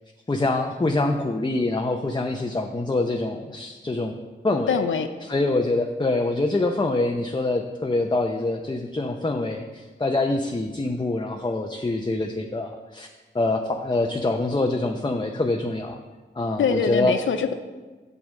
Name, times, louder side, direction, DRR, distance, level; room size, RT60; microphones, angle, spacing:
voice 1, 0.3-4.2 4.4-4.8 5.2-13.1 13.3-16.0 16.4-17.1, left 2 dB, 25° left, 3 dB, 0.7 m, -25 dB
voice 2, 4.7-5.1 16.6-17.5, left 6 dB, 90° left, 8 dB, 0.5 m, -23 dB
6.8 x 6.1 x 6.5 m, 1.3 s
cardioid pair, 40°, 20 cm